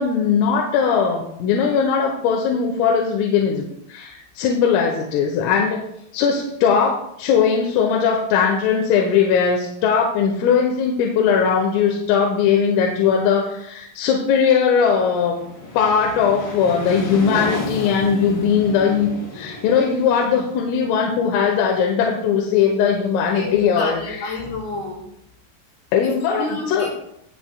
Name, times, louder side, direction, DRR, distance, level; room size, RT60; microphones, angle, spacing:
voice 1, 0.0-5.8 6.1-15.4 15.8-24.3 25.9-26.9, left 6 dB, 90° left, 1 dB, 3.7 m, -19 dB
sound 1, 15.0-21.7, left 1 dB, 40° left, 2.8 m, -32 dB
voice 2, 23.3-25.1 26.0-27.1, left 3 dB, 65° left, -6 dB, 7.2 m, -30 dB
21.5 x 7.5 x 2.3 m, 0.75 s
omnidirectional pair, 5.7 m